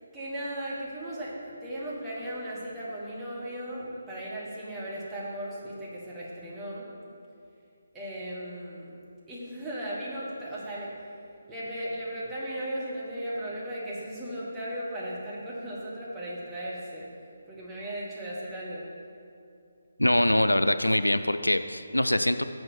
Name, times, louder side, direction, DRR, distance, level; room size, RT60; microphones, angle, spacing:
voice 1, 0.0-6.9 7.9-8.9 9.3-10.9 11.5-17.1 17.5-18.9, right 1 dB, 10° right, -7 dB, 1.5 m, -36 dB
voice 2, 20.0-22.4, left 1 dB, 85° left, 11 dB, 0.3 m, -23 dB
6.4 x 6.1 x 6.3 m, 2.5 s
figure-of-eight pair, 145°, 0 cm